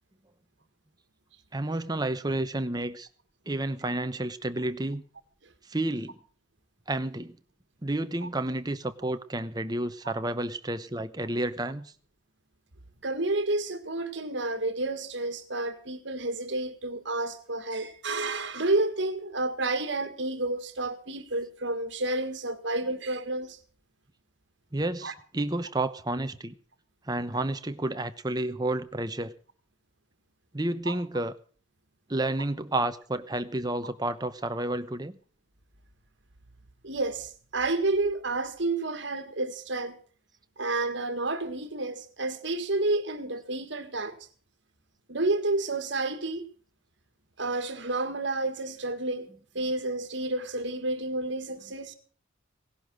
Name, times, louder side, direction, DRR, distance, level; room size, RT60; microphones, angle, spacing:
voice 1, 1.5-3.1 3.5-5.0 5.7-6.2 6.9-7.4 7.8-11.9 24.7-26.5 27.1-29.3 30.5-31.3 32.1-35.2, right 1 dB, 20° right, 0.9 m, -30 dB
voice 2, 13.0-23.6 25.0-25.1 30.9-31.0 36.8-40.0 40.6-44.2 45.1-46.5 47.4-49.3 49.5-51.9, right 2 dB, 60° right, 1.9 m, -30 dB
17.5 x 11.5 x 6.4 m
head